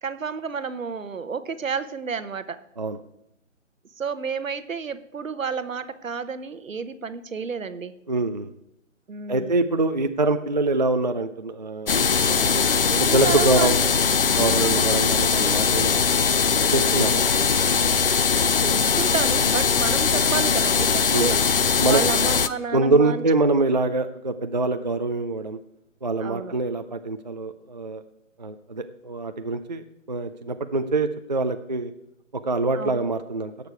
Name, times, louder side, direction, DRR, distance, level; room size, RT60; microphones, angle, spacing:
voice 1, 0.0-2.6 4.0-7.9 9.1-9.6 12.9-14.0 14.6-15.0 17.1-17.2 18.3-21.4 21.9-23.2 26.2-26.5 32.7-33.0, right 5 dB, 75° right, 13 dB, 1.0 m, -31 dB
voice 2, 8.1-8.5 9.3-12.7 13.0-13.8 14.3-16.2 16.7-17.2 21.1-21.3 21.8-22.0 22.7-25.6 26.0-28.0 28.4-31.9 32.3-33.5, right 2 dB, 35° right, 8 dB, 0.4 m, -24 dB
sound 1, 11.9-22.5, left 5 dB, 45° left, 0.4 m, -21 dB
17.0 x 6.6 x 4.6 m, 0.83 s
figure-of-eight pair, 150°, 40 cm